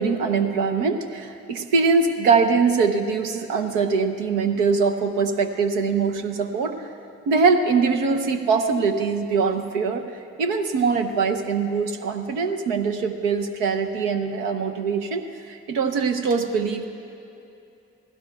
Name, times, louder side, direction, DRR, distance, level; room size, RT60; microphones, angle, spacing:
voice 1, 0.0-6.9 7.3-10.1 10.4-16.9, right 5 dB, 80° right, 6 dB, 0.8 m, -22 dB
19.0 x 16.0 x 2.3 m, 2.8 s
hypercardioid pair, 45°, 32 cm